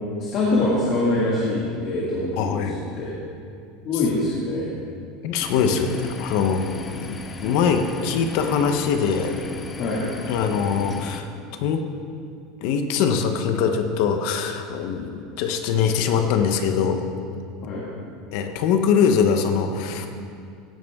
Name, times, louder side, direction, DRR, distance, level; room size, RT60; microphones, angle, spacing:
voice 1, 0.2-2.6 2.9-3.1 3.8-4.7 9.8-10.0 17.6-17.8, left 2 dB, 45° left, -6 dB, 2.2 m, -23 dB
voice 2, 2.4-2.8 5.2-6.7 7.0-9.4 10.3-11.3 11.5-11.8 12.6-17.0 18.3-20.1, left 6 dB, 60° left, 6 dB, 0.9 m, -22 dB
sound 1, 5.4-11.2, left 4 dB, 20° left, 0.7 m, -36 dB
16.5 x 10.5 x 3.6 m, 2.4 s
supercardioid pair, 155°, 0 cm